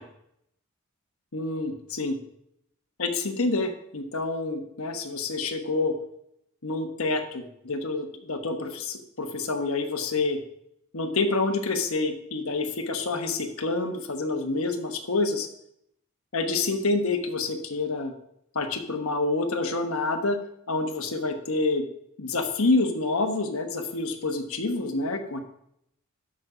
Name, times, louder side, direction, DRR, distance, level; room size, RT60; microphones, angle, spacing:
voice 1, 1.3-2.2 3.0-5.9 6.6-10.4 10.9-15.5 16.3-18.1 18.5-20.4 20.7-21.8 22.2-25.4, left 3 dB, 75° left, 5 dB, 1.2 m, -27 dB
8.1 x 6.3 x 5.0 m, 0.75 s
head